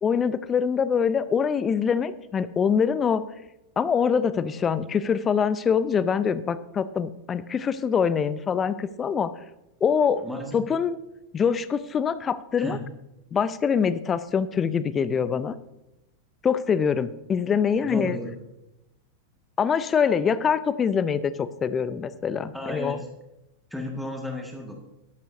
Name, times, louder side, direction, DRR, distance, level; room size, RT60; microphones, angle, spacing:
voice 1, 0.0-3.2 3.8-9.3 9.8-10.2 10.5-11.0 11.3-12.8 13.3-15.5 16.4-18.2 19.6-23.0, left 6 dB, 20° left, 15 dB, 0.6 m, -24 dB
voice 2, 10.2-10.6 12.6-12.8 17.8-18.4 22.5-23.1 23.7-24.8, left 1 dB, ahead, 1 dB, 1.7 m, -33 dB
13.0 x 12.0 x 2.7 m, 0.92 s
figure-of-eight pair, 90°, 0 cm